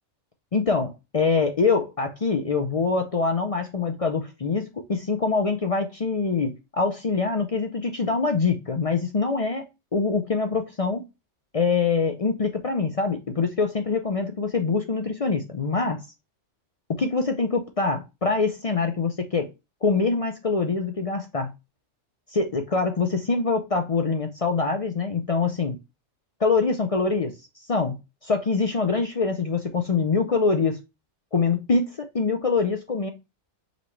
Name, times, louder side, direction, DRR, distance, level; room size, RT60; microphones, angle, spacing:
voice 1, 0.5-9.6 9.9-11.0 11.5-16.0 17.0-19.5 19.8-21.5 22.3-25.8 26.4-27.3 27.7-28.0 28.2-30.8 31.3-33.1, left 4 dB, 50° left, 0.4 m, -24 dB
5.2 x 3.2 x 3.1 m
omnidirectional pair, 1.3 m